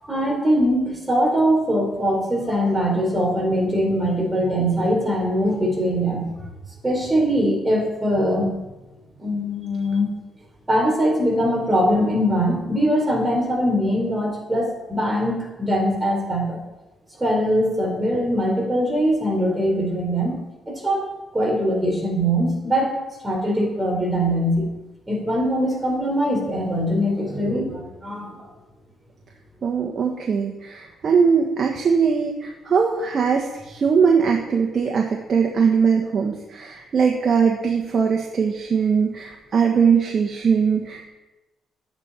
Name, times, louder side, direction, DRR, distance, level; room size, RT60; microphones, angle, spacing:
voice 1, 0.0-6.3 6.8-8.5 9.2-10.1 10.7-16.6 17.2-20.4 20.7-21.0 21.3-23.0 23.2-24.7 25.1-28.5, equal, 15° right, -2 dB, 4.8 m, -22 dB
voice 2, 29.6-41.1, right 6 dB, 50° right, 1 dB, 1.4 m, -20 dB
13.0 x 10.5 x 4.4 m, 1.1 s
cardioid pair, 90°, 0 cm